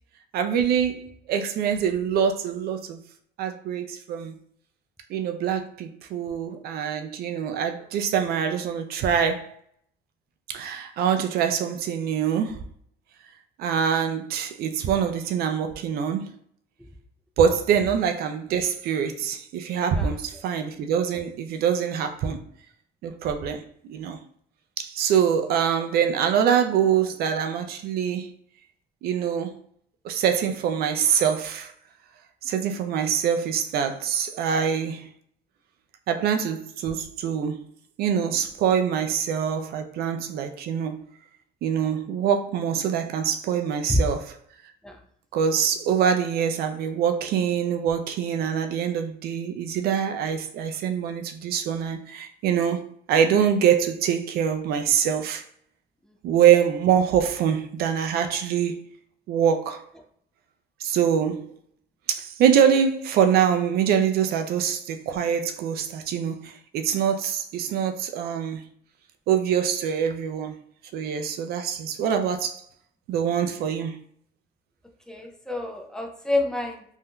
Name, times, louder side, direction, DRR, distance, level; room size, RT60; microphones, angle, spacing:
voice 1, 0.3-3.0 3.4-4.3 5.1-9.5 10.5-12.6 13.6-16.3 17.4-22.4 23.0-23.6 23.9-24.2 24.8-28.3 29.0-29.6 30.0-31.7 32.4-35.1 36.1-37.7 38.0-41.0 41.6-44.3 45.3-52.8 53.1-55.4 56.2-58.8 59.3-59.8 60.8-61.5 62.1-68.7 69.3-70.6 70.9-72.6 73.1-74.0, right 8 dB, 65° right, 0.4 m, -24 dB
voice 2, 75.1-76.8, left 2 dB, 5° left, 0.5 m, -28 dB
3.5 x 2.6 x 2.2 m
cardioid pair, 110°, 17 cm